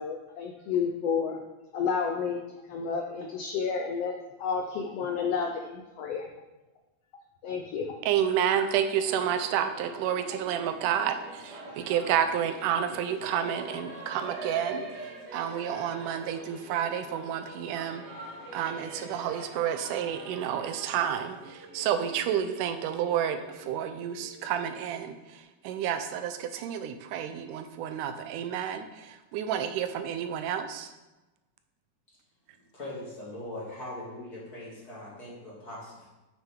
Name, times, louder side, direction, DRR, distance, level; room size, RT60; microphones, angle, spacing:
voice 1, 0.0-1.4 1.7-2.4 2.6-4.1 4.4-6.3 7.4-8.0, left 6 dB, 85° left, 2 dB, 1.3 m, -30 dB
voice 2, 8.1-11.2 11.4-14.9 15.3-18.0 18.5-21.4 21.7-25.2 25.6-28.9 29.3-30.9, right 9 dB, 90° right, 8 dB, 2.1 m, -30 dB
Singing / Musical instrument, 9.0-25.3, right 2 dB, 45° right, 1.6 m, -45 dB
voice 3, 32.7-36.1, left 1 dB, 30° left, -7 dB, 2.8 m, -41 dB
9.4 x 6.2 x 3.7 m, 1.1 s
omnidirectional pair, 3.6 m